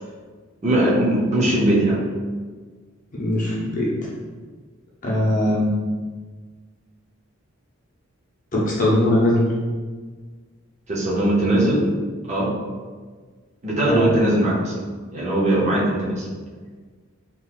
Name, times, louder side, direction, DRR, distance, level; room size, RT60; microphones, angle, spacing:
voice 1, 0.6-2.0 10.9-11.8 12.3-12.5 13.6-14.7 15.1-16.3, right 1 dB, 30° right, -6 dB, 0.7 m, -20 dB
voice 2, 3.1-4.0 5.0-5.7 8.5-9.5 13.8-14.3, left 1 dB, 35° left, -5 dB, 0.6 m, -20 dB
3.8 x 2.9 x 2.3 m, 1.5 s
head